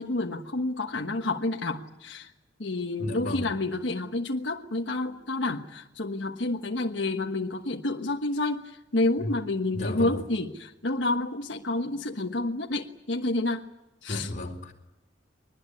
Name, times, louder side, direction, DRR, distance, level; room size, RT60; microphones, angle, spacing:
voice 1, 0.0-2.3 2.6-13.7 14.0-14.3, left 2 dB, 70° left, 1.4 m, -29 dB
voice 2, 3.0-3.5 9.2-9.3 9.7-10.2 14.1-14.7, left 1 dB, 45° left, 4.1 m, -33 dB
23.0 x 20.5 x 9.8 m
head